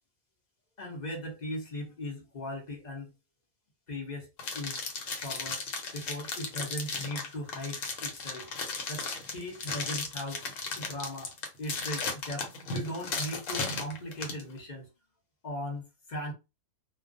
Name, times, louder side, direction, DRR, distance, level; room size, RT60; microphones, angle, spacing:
voice 1, 0.8-3.1 3.9-4.3 4.5-4.8 5.2-5.6 5.9-8.5 8.9-9.1 9.3-10.4 10.8-11.3 11.6-14.9 15.4-16.3, left 1 dB, 45° left, 0.6 m, -38 dB
sound 1, 4.4-14.4, left 4 dB, 70° left, 1.0 m, -35 dB
2.2 x 2.2 x 2.5 m
omnidirectional pair, 1.5 m